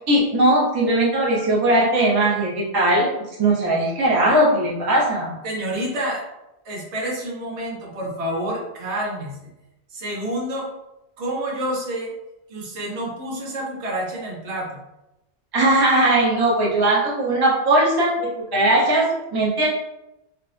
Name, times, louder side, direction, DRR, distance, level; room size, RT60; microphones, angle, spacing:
voice 1, 0.1-3.1 3.4-5.4 15.5-19.7, right 1 dB, 30° right, -5 dB, 0.5 m, -19 dB
voice 2, 5.4-6.2 6.6-9.5 9.9-10.7 11.2-12.1 12.5-14.8, right 1 dB, 80° right, -2 dB, 1.0 m, -28 dB
2.5 x 2.1 x 2.4 m, 0.92 s
omnidirectional pair, 1.2 m